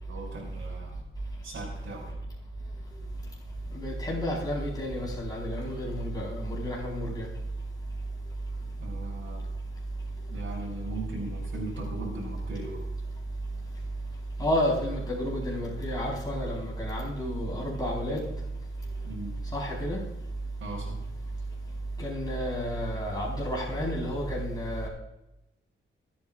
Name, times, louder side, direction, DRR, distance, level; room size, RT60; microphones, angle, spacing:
voice 1, 0.1-1.0 1.4-2.2 8.8-9.4 10.3-12.8 19.0-19.4 20.6-21.1, right 2 dB, 70° right, -6 dB, 4.4 m, -39 dB
voice 2, 3.7-7.3 14.4-18.3 19.5-20.0 22.0-24.9, equal, 20° left, -4 dB, 4.4 m, -31 dB
26.0 x 8.8 x 2.5 m, 0.89 s
wide cardioid pair, 145°, 21 cm